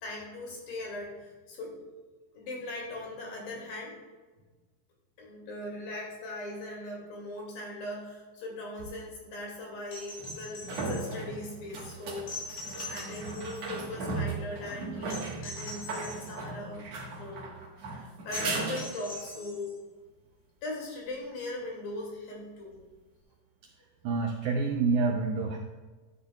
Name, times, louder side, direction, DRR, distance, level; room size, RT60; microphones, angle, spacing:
voice 1, 0.0-1.8 2.3-4.0 5.2-12.5 12.9-16.9 17.2-17.5 17.9-19.8 20.6-22.8, left 2 dB, 75° left, -1 dB, 3.9 m, -39 dB
sound 1, 8.8-8.9 10.2-19.3 22.7-22.8, right 3 dB, 55° right, 2.1 m, -37 dB
sound 2, 9.9-11.2 12.3-13.8 15.1-16.4 18.3-19.8 21.6-21.7, left 2 dB, 90° left, 5.2 m, -43 dB
voice 2, 24.0-25.6, right 4 dB, 90° right, 3 dB, 1.7 m, -27 dB
12.0 x 9.5 x 2.3 m, 1.3 s
omnidirectional pair, 4.1 m